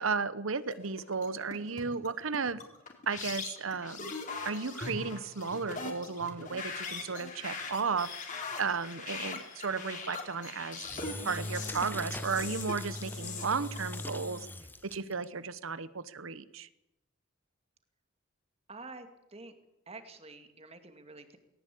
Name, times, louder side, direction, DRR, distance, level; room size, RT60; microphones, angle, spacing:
voice 1, 0.0-2.6 3.1-4.1 4.4-8.1 8.6-10.9 11.2-14.5 14.8-16.7, right 5 dB, 70° right, 16 dB, 1.0 m, -34 dB
sound 1, 0.6-14.1, left 4 dB, 40° left, 4.1 m, -41 dB
Engine / Drill, 10.7-15.3, left 1 dB, 10° left, 0.9 m, -40 dB
voice 2, 18.7-19.5 19.9-21.4, right 3 dB, 30° right, 8 dB, 2.3 m, -48 dB
19.0 x 18.0 x 8.5 m, 0.89 s
head